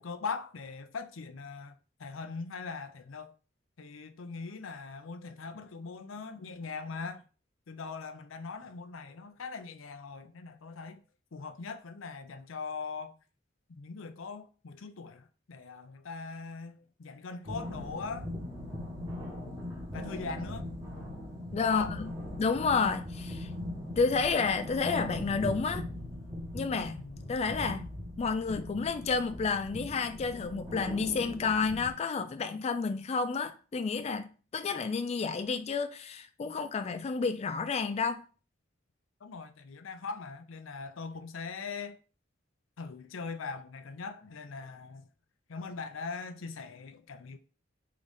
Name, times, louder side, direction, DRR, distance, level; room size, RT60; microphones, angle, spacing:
voice 1, 0.0-1.7 2.0-3.3 3.8-7.2 7.7-11.0 11.3-13.2 13.7-18.3 19.9-20.7 21.6-22.0 26.9-27.4 39.2-42.0 42.8-45.1 45.5-47.4, left 4 dB, 90° left, 0.6 m, -41 dB
sound 1, 17.4-31.9, left 1 dB, 20° right, 1.3 m, -40 dB
voice 2, 21.5-22.1 22.4-23.5 24.0-25.9 26.5-27.0 27.3-27.9 28.2-38.2, left 4 dB, 35° left, 0.3 m, -30 dB
3.8 x 3.7 x 3.5 m
head